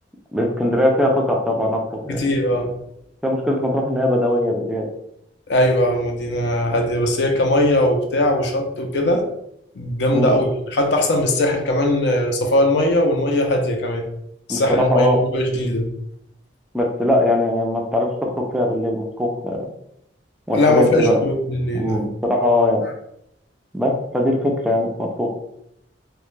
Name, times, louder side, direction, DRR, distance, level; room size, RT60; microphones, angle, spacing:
voice 1, 0.3-2.3 3.2-4.9 10.1-10.4 14.5-15.2 16.7-19.6 20.5-21.2 21.7-22.8 23.7-25.3, left 1 dB, 5° right, 0 dB, 0.3 m, -20 dB
voice 2, 2.1-2.7 5.5-9.2 9.8-14.0 14.5-15.9 20.5-22.0, left 1 dB, 65° left, 3 dB, 0.5 m, -19 dB
2.2 x 2.1 x 3.0 m, 0.76 s
head